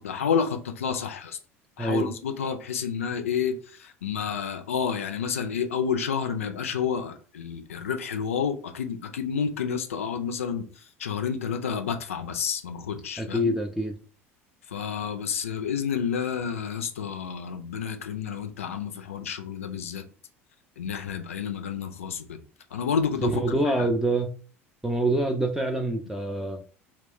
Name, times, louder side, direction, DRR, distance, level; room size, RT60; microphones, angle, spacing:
voice 1, 0.0-1.4 1.8-13.5 14.7-20.0 20.8-22.4 22.7-23.4 23.8-23.9, left 7 dB, 75° left, 0.4 m, -30 dB
voice 2, 1.8-2.1 13.2-13.9 23.2-24.3 24.8-26.6, right 1 dB, 5° right, 0.4 m, -25 dB
2.3 x 2.2 x 3.5 m
figure-of-eight pair, 70°, 7 cm